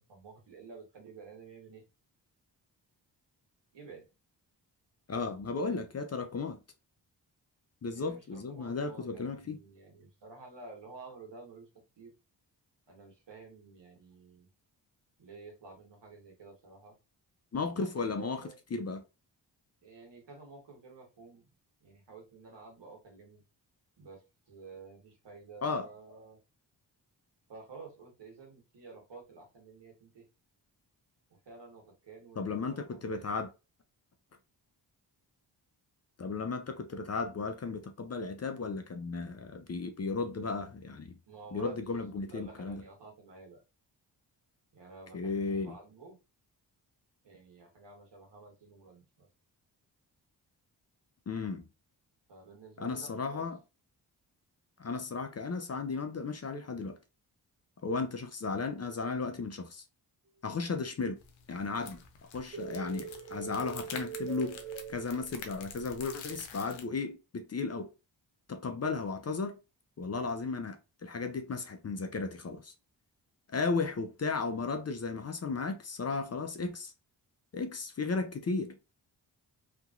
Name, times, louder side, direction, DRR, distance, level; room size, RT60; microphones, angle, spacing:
voice 1, 0.0-1.8 3.7-4.0 7.9-11.7 12.0-12.1 12.9-14.5 15.2-16.9 17.7-18.6 19.8-21.5 21.8-23.4 24.0-26.4 27.5-30.2 31.3-33.4 41.3-43.6 44.7-46.2 47.2-49.3 52.3-53.4, right 4 dB, 65° right, 1.5 m, -51 dB
voice 2, 5.1-6.6 7.8-9.6 17.5-19.0 25.6-25.9 32.4-33.5 36.2-41.2 41.5-42.8 45.1-45.8 51.3-51.7 52.8-53.6 54.8-57.0 57.8-59.8 60.4-61.2 61.5-64.6 64.9-67.9 68.5-69.6 70.0-72.7 73.5-76.9 77.5-78.8, left 4 dB, 35° left, 0.6 m, -35 dB
sound 1, 61.2-66.8, left 6 dB, 90° left, 0.7 m, -48 dB
sound 2, 62.5-65.7, right 7 dB, 30° right, 0.7 m, -42 dB
2.9 x 2.6 x 2.4 m
supercardioid pair, 45°, 45 cm